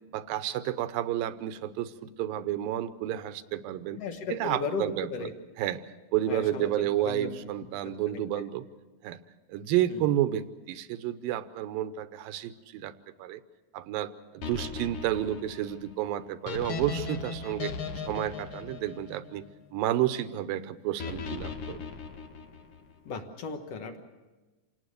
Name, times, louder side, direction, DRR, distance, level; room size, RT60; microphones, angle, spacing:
voice 1, 0.1-4.0 4.3-5.1 5.6-5.8 6.1-8.7 9.0-9.2 9.5-12.9 13.2-13.4 13.7-17.7 18.1-19.4 19.7-21.8, right 12 dB, 75° right, 12 dB, 2.4 m, -31 dB
voice 2, 4.0-5.3 6.3-7.3 7.8-8.2 9.9-10.0 23.1-24.0, left 4 dB, 55° left, 6 dB, 1.8 m, -36 dB
sound 1, 14.4-19.7 21.0-22.9, left 5 dB, 85° left, 1.3 m, -38 dB
27.5 x 18.5 x 6.6 m, 1.2 s
omnidirectional pair, 4.6 m